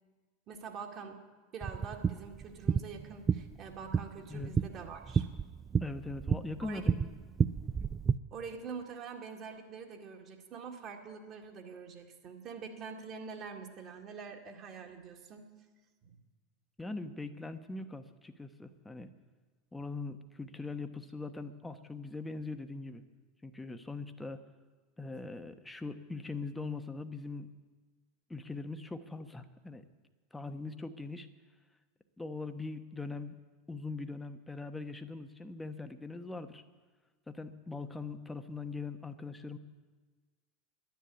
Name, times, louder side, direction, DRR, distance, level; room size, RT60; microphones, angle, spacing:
voice 1, 0.5-1.2 1.5-5.3 6.6-6.9 8.3-15.5 16.0-16.2, right 5 dB, 40° right, 2 dB, 2.1 m, -45 dB
sound 1, 1.6-8.1, right 6 dB, 25° right, 0.4 m, -32 dB
voice 2, 5.8-7.1 16.8-19.1 19.7-23.0 23.4-24.4 25.0-27.5 28.3-29.8 30.3-31.3 32.2-33.4 33.7-36.6 37.3-39.6, left 3 dB, 10° left, 8 dB, 1.1 m, -41 dB
11.0 x 10.5 x 8.4 m, 1.3 s
figure-of-eight pair, 80°, 0 cm